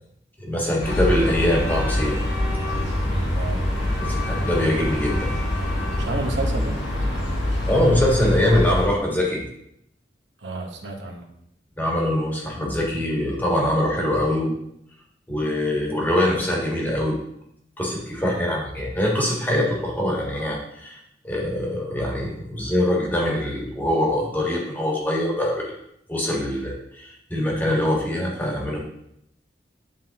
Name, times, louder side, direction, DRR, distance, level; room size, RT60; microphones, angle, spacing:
voice 1, 0.4-2.2 4.0-5.3 7.7-9.4 11.8-14.5 15.3-17.2 17.8-21.0 21.2-25.7 26.1-28.8, left 1 dB, 10° left, -2 dB, 1.5 m, -23 dB
sound 1, 0.8-8.9, left 1 dB, 85° left, 1.8 m, -25 dB
voice 2, 3.3-3.6 6.0-6.8 10.4-11.3 18.2-18.5, right 2 dB, 85° right, 2 dB, 1.1 m, -31 dB
11.0 x 3.7 x 2.9 m, 0.75 s
head